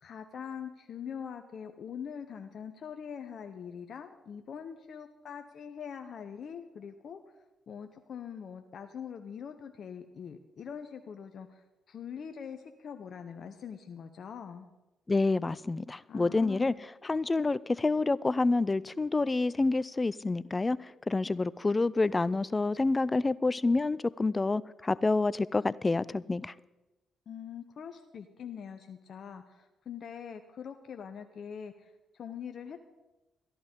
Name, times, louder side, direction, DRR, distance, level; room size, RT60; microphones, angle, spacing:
voice 1, 0.0-7.2 7.7-14.7 16.1-16.9 27.3-32.9, left 7 dB, 60° left, 0.8 m, -43 dB
voice 2, 15.1-16.7 17.0-26.5, left 3 dB, 30° left, 0.4 m, -28 dB
13.5 x 11.0 x 5.2 m
hypercardioid pair, 45°, 0 cm